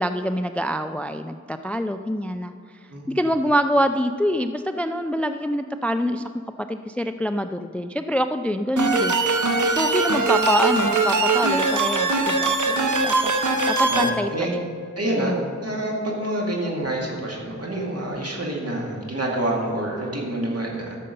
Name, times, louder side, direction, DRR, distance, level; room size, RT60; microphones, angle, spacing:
voice 1, 0.0-2.5 3.1-6.2 6.6-13.3 13.7-14.6 15.2-15.4, equal, 5° left, 9 dB, 0.3 m, -25 dB
voice 2, 2.9-3.2 13.9-14.5 15.0-15.4 15.6-21.0, right 1 dB, 50° right, -3 dB, 2.4 m, -27 dB
sound 1, 8.8-14.1, right 3 dB, 75° right, 1.0 m, -21 dB
13.0 x 6.7 x 5.3 m, 2.4 s
wide cardioid pair, 55°, 30 cm